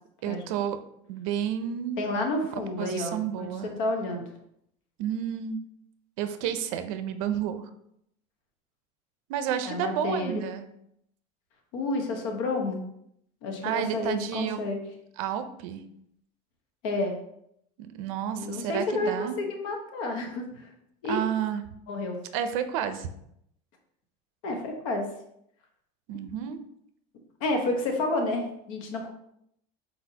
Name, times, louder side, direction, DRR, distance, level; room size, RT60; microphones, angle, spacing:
voice 1, 0.2-0.8 1.1-2.0 2.5-3.7 5.0-5.6 6.2-7.7 9.3-10.7 13.6-14.6 15.2-15.8 17.8-19.4 21.1-21.6 22.3-23.1 26.1-26.6, right 9 dB, 75° right, 9 dB, 0.5 m, -31 dB
voice 2, 2.0-4.3 9.6-10.4 11.7-12.8 13.4-14.8 16.8-17.1 18.4-20.7 21.0-21.2 21.9-22.2 24.4-25.1 27.4-29.1, left 2 dB, 75° left, 3 dB, 1.0 m, -30 dB
4.2 x 4.1 x 2.8 m, 0.74 s
cardioid pair, 170°, 17 cm